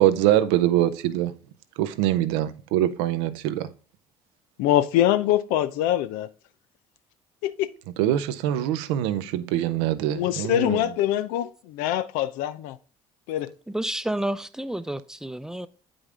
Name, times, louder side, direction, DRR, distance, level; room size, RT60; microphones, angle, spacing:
voice 1, 0.0-1.3 1.8-3.7 8.0-10.8, right 12 dB, 85° right, 0.6 m, -23 dB
voice 2, 4.6-6.3 7.4-7.7 10.0-12.8 13.3-13.5, left 12 dB, 80° left, 0.5 m, -24 dB
voice 3, 13.7-15.7, right 1 dB, 5° right, 0.6 m, -30 dB
8.1 x 5.2 x 3.7 m
hypercardioid pair, 65°, 14 cm